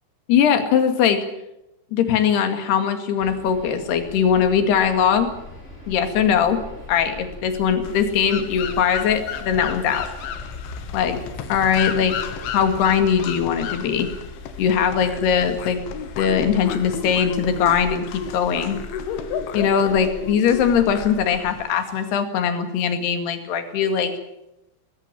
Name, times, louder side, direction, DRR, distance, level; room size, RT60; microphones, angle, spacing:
voice 1, 0.3-1.2 1.9-5.3 5.9-6.6 6.9-10.1 10.9-11.2 11.5-12.2 12.5-14.1 14.6-15.8 16.2-18.8 19.5-24.1, left 7 dB, 65° left, 8 dB, 3.9 m, -20 dB
sound 1, 3.2-21.5, left 2 dB, 15° left, 5.8 m, -39 dB
sound 2, 7.8-22.2, left 7 dB, 85° left, 4.2 m, -33 dB
20.0 x 18.5 x 8.9 m, 0.89 s
omnidirectional pair, 5.4 m